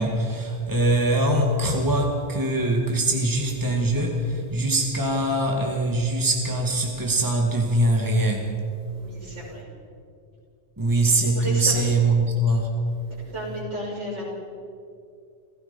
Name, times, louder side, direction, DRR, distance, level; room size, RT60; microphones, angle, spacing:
voice 1, 0.0-8.5 10.8-12.7, right 1 dB, 15° right, 0 dB, 2.2 m, -22 dB
voice 2, 8.9-9.7 11.2-11.8 13.3-14.2, equal, 80° right, -4 dB, 6.6 m, -33 dB
29.0 x 16.5 x 5.5 m, 2.4 s
omnidirectional pair, 1.2 m